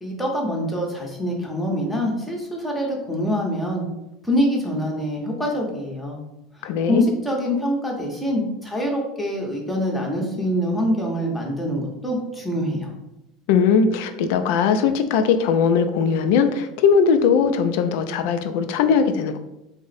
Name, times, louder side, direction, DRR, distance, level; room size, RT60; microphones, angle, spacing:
voice 1, 0.0-3.8 4.2-6.2 6.6-12.9, equal, 5° left, -1 dB, 0.7 m, -25 dB
voice 2, 6.6-7.1 13.5-19.4, left 6 dB, 70° left, 8 dB, 0.4 m, -19 dB
3.6 x 2.0 x 4.0 m, 0.91 s
supercardioid pair, 145°, 0 cm